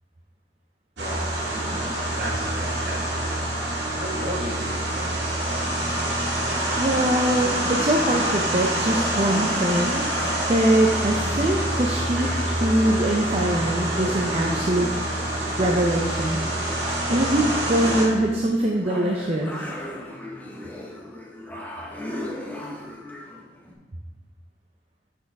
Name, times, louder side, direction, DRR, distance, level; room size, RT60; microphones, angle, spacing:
voice 1, 1.0-3.2 4.0-5.6, equal, 55° right, 0 dB, 1.4 m, -36 dB
sound 1, 1.0-18.1, right 1 dB, 90° right, 2.1 m, -26 dB
voice 2, 6.8-10.1 10.5-14.9 15.6-16.4 17.1-19.7, right 1 dB, 35° right, 0 dB, 0.6 m, -23 dB
sound 2, 7.4-23.7, left 1 dB, 10° left, 0.9 m, -38 dB
6.5 x 6.2 x 4.6 m, 1.3 s
head